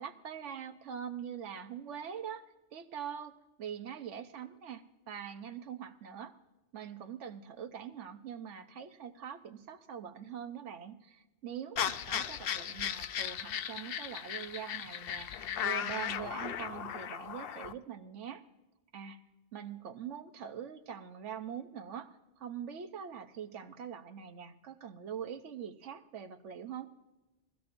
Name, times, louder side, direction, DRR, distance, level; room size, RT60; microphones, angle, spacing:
voice 1, 0.0-6.4 6.7-18.4 18.9-19.2 19.5-26.9, right 8 dB, 85° right, 8 dB, 1.1 m, -43 dB
sound 1, 11.8-17.7, left 9 dB, 60° left, 0.7 m, -36 dB
21.0 x 16.0 x 2.6 m, 1.1 s
omnidirectional pair, 1.2 m